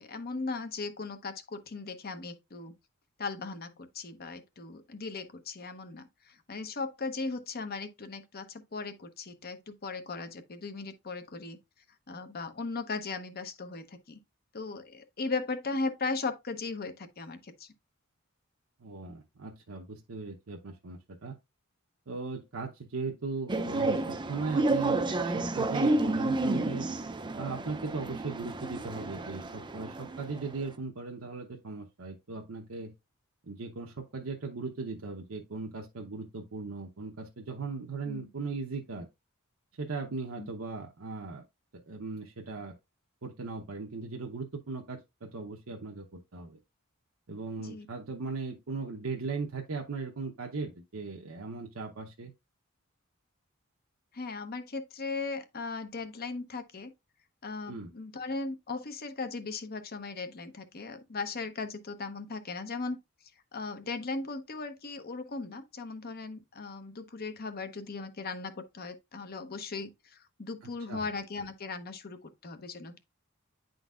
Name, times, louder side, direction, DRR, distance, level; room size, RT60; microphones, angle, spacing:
voice 1, 0.0-2.7 3.2-11.6 12.1-14.2 14.5-17.7 38.1-38.3 40.4-40.5 47.6-47.9 54.1-56.9 57.4-63.0 63.5-73.0, left 3 dB, 50° left, 0.8 m, -38 dB
voice 2, 18.8-21.4 22.1-26.9 27.4-32.9 33.4-39.1 39.8-41.4 41.8-42.8 43.2-46.6 47.3-52.3 57.7-57.9 70.6-71.0, right 4 dB, 75° right, 0.8 m, -38 dB
sound 1, 23.5-30.6, right 2 dB, 20° right, 0.5 m, -30 dB
10.0 x 3.9 x 2.4 m
head